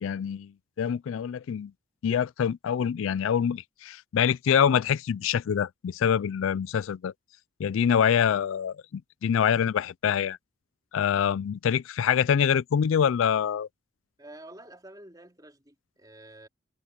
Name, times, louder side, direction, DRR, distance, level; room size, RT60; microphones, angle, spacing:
voice 1, 0.0-0.5 0.8-1.7 2.0-7.1 7.6-10.4 10.9-13.7, left 8 dB, 70° left, 0.3 m, -25 dB
voice 2, 14.2-16.5, right 1 dB, 20° right, 3.6 m, -48 dB
head